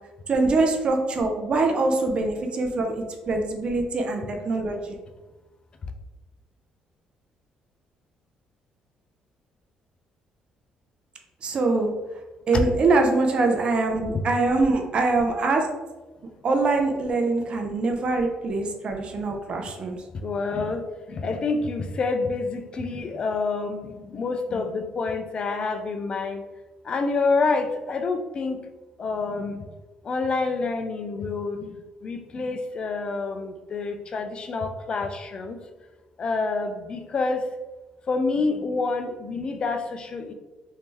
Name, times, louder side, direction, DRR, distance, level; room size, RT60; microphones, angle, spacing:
voice 1, 0.3-5.0 11.4-11.9 12.5-15.7 16.4-20.0, right 3 dB, 40° right, 3 dB, 0.5 m, -23 dB
voice 2, 20.1-26.4 26.8-28.6 29.0-29.7 30.0-31.8 32.0-35.6 36.2-37.4 38.1-40.3, left 3 dB, 40° left, 6 dB, 0.4 m, -27 dB
2.9 x 2.7 x 3.6 m, 1.1 s
cardioid pair, 120°, 3 cm